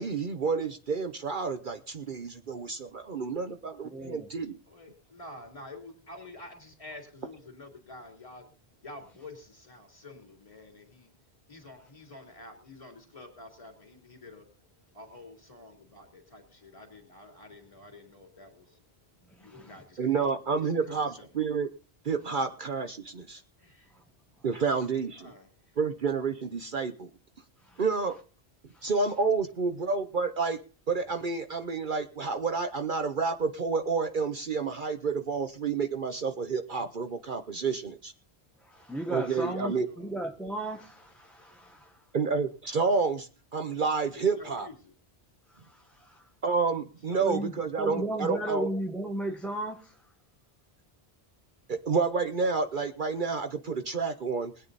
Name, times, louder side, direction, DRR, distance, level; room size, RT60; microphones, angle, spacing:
voice 1, 0.0-4.6 20.0-21.7 22.0-23.4 24.4-25.3 25.8-27.1 27.8-28.2 28.8-30.6 30.9-38.1 39.1-39.9 42.1-44.7 46.4-48.7 51.7-54.5, right 5 dB, 50° right, 1.0 m, -29 dB
voice 2, 3.9-4.3 19.4-19.7 27.7-27.8 38.6-41.9 45.7-46.2 47.2-47.5 47.8-49.9, right 1 dB, ahead, 1.0 m, -35 dB
voice 3, 4.7-8.5 8.8-11.1 11.5-18.8 19.4-21.3 23.6-23.9 25.2-25.7 39.3-40.1 44.2-44.9 47.1-47.4, left 2 dB, 30° left, 3.2 m, -49 dB
21.0 x 9.0 x 4.1 m
omnidirectional pair, 1.1 m